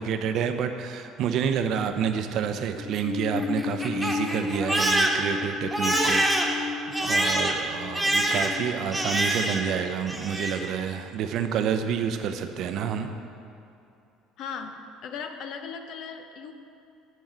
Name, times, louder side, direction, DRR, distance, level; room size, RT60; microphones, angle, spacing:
voice 1, 0.0-13.1, right 7 dB, 55° right, 7 dB, 0.7 m, -29 dB
Crying sobbing, 2.8-9.8 10.1-10.7, equal, 5° right, 1.4 m, -26 dB
voice 2, 14.4-16.5, left 6 dB, 55° left, 6 dB, 0.8 m, -37 dB
10.5 x 4.6 x 7.9 m, 2.7 s
figure-of-eight pair, 60°, 0 cm